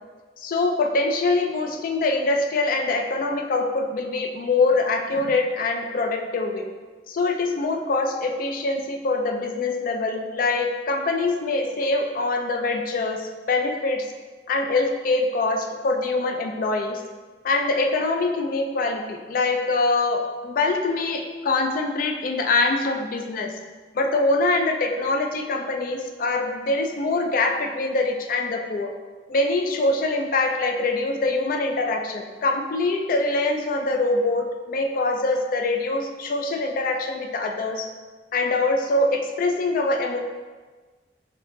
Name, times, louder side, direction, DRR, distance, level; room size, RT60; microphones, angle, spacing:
voice 1, 0.4-6.7 7.1-14.1 14.5-17.0 17.4-23.5 23.9-28.9 29.3-37.9 38.3-40.2, left 3 dB, 50° left, 4 dB, 0.3 m, -24 dB
3.3 x 2.8 x 3.1 m, 1.4 s
head